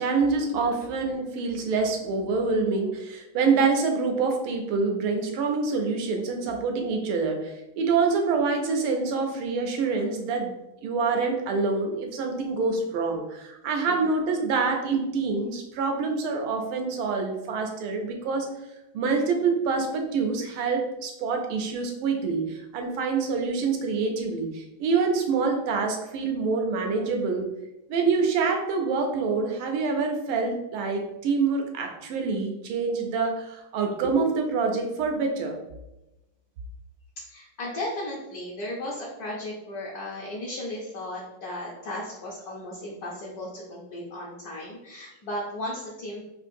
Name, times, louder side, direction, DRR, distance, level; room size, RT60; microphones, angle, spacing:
voice 1, 0.0-10.5 10.8-18.5 18.9-27.5 27.9-35.6, right 4 dB, 85° right, 3 dB, 1.5 m, -26 dB
voice 2, 37.2-46.2, left 1 dB, 65° left, -4 dB, 0.9 m, -35 dB
4.5 x 2.4 x 2.6 m, 0.95 s
omnidirectional pair, 2.3 m